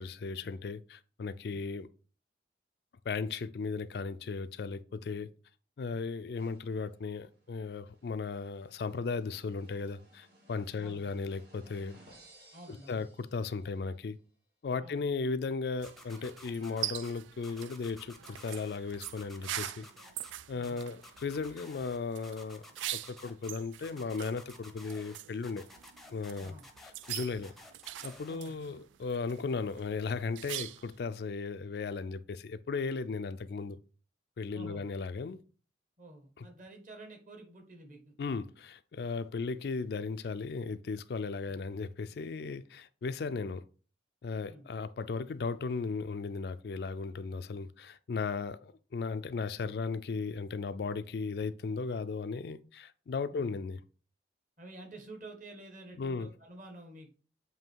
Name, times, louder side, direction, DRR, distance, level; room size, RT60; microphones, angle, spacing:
voice 1, 0.0-1.9 3.1-5.3 5.8-12.0 12.7-14.2 14.6-19.9 20.5-22.6 22.9-25.7 26.1-26.5 26.8-27.5 28.0-33.8 34.4-35.4 36.4-36.5 38.2-43.6 44.2-53.8 56.0-56.3, left 4 dB, 60° left, 0.3 m, -36 dB
sound 1, 6.3-13.9, right 1 dB, 60° right, 2.5 m, -61 dB
voice 2, 10.8-11.1 12.5-13.1 14.8-15.0 20.5-20.8 26.4-26.6 28.3-28.5 34.5-34.9 36.0-38.1 44.4-44.7 53.3-53.5 54.6-57.1, right 1 dB, 45° right, 1.4 m, -50 dB
sound 2, 15.8-17.1 17.4-18.8 19.0-20.3 20.6-22.0 22.2-23.5 23.8-25.2 25.4-28.4, left 1 dB, ahead, 0.6 m, -53 dB
sound 3, 15.8-31.0, right 13 dB, 90° right, 0.3 m, -44 dB
7.6 x 2.7 x 4.5 m
head